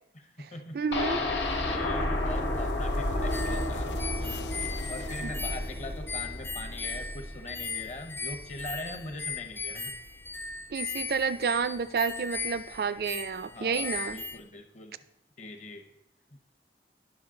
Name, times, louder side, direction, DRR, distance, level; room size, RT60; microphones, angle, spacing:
voice 1, 0.1-0.8 1.7-9.9 13.5-15.0 15.4-15.8, left 2 dB, 40° left, 5 dB, 0.9 m, -42 dB
voice 2, 0.7-1.2 5.2-5.3 10.7-14.2, right 5 dB, 55° right, 15 dB, 0.4 m, -30 dB
sound 1, 0.9-8.8 9.1-9.2 9.6-9.7, left 1 dB, 90° left, 1.5 m, -32 dB
sound 2, 1.5-6.7, left 5 dB, 75° left, 0.4 m, -45 dB
sound 3, 3.3-14.4, left 4 dB, 10° left, 0.4 m, -38 dB
9.8 x 6.5 x 3.8 m, 0.81 s
head